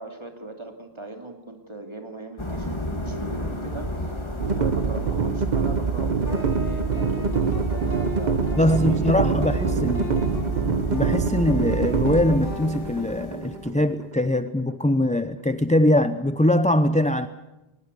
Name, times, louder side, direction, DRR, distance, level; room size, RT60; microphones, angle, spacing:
voice 1, 0.0-3.9 4.5-9.4, right 2 dB, 25° right, 4 dB, 2.9 m, -39 dB
sound 1, 2.4-13.8, left 1 dB, 30° left, 2.7 m, -33 dB
sound 2, 4.4-14.5, right 5 dB, 50° right, 1.0 m, -25 dB
sound 3, 6.3-13.7, left 1 dB, 60° left, 6.5 m, -37 dB
voice 2, 8.6-10.2 10.9-17.3, left 1 dB, 10° left, 11 dB, 0.7 m, -22 dB
22.0 x 20.5 x 8.3 m, 0.95 s
omnidirectional pair, 1.0 m